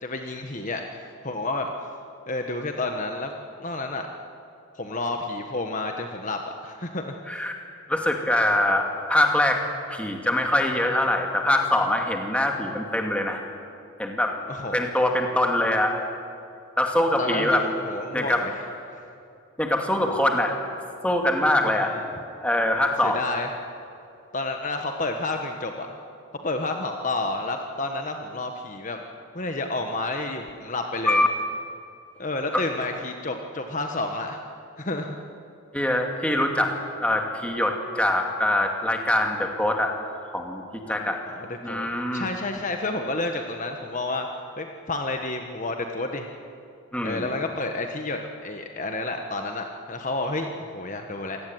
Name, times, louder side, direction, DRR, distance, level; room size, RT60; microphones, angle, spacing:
voice 1, 0.0-1.7 2.3-3.3 3.6-4.1 4.7-7.5 14.5-14.8 17.2-18.6 18.9-19.1 21.7-22.0 23.0-23.5 24.3-26.0 26.4-29.0 29.3-31.2 32.2-34.4 34.8-35.2 40.9-44.3 44.6-46.3 47.0-51.4, left 2 dB, 35° left, 4 dB, 1.4 m, -30 dB
voice 2, 7.9-13.4 14.0-14.4 14.7-15.9 16.8-17.6 18.1-18.5 19.6-20.5 21.0-21.9 22.4-23.2 31.1-31.3 32.5-32.6 35.7-36.7 37.0-39.9 40.3-41.2 41.6-42.3 46.9-47.3, left 1 dB, 5° left, 2 dB, 2.4 m, -23 dB
27.0 x 18.0 x 9.4 m, 2.6 s
head